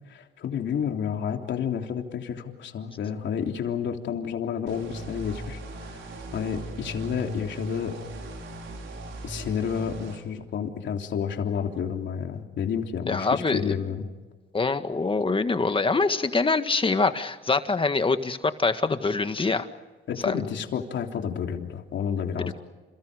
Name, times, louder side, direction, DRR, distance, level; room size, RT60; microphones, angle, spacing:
voice 1, 0.1-5.6 5.9-6.0 6.3-8.0 9.2-14.0 20.1-22.5, left 7 dB, 70° left, 3 dB, 3.4 m, -30 dB
sound 1, 4.7-10.2, right 1 dB, 75° right, 6.2 m, -38 dB
voice 2, 13.1-13.8 14.5-19.7 20.2-20.4 22.4-22.5, left 3 dB, 25° left, 9 dB, 1.8 m, -24 dB
29.5 x 29.0 x 5.2 m, 1.3 s
cardioid pair, 90°, 20 cm